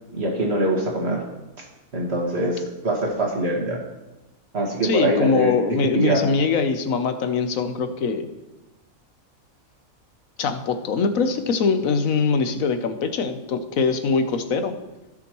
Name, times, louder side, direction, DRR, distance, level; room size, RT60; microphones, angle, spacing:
voice 1, 0.1-1.2 1.6-1.7 1.9-3.8 4.5-6.2, right 1 dB, 50° right, -2 dB, 2.2 m, -23 dB
voice 2, 4.8-8.3 10.4-14.7, left 5 dB, 75° left, 8 dB, 1.2 m, -22 dB
17.0 x 6.1 x 3.1 m, 1.1 s
omnidirectional pair, 1.4 m